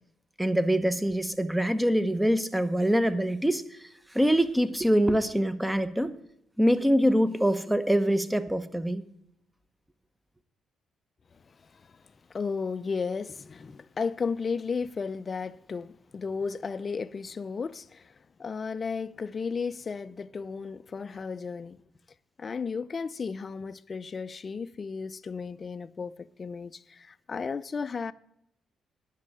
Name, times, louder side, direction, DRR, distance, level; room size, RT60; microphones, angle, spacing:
voice 1, 0.4-6.2 6.6-9.0, equal, 5° right, 0.9 m, -24 dB
voice 2, 11.5-12.0 12.3-18.1 18.4-21.8 22.4-28.1, left 5 dB, 40° left, 0.5 m, -34 dB
10.5 x 6.4 x 8.5 m
cardioid pair, 90°, 0 cm